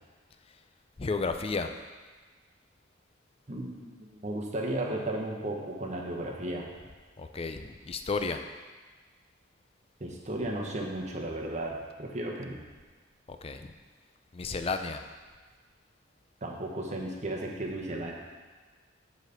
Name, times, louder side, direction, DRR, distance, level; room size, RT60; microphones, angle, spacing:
voice 1, 1.0-1.7 7.2-8.4 13.3-13.7 14.3-15.0, left 4 dB, 30° left, 7 dB, 0.4 m, -32 dB
voice 2, 3.5-6.7 10.0-12.6 16.4-18.1, right 1 dB, 35° right, 0 dB, 1.0 m, -34 dB
7.3 x 4.1 x 6.6 m, 1.4 s
head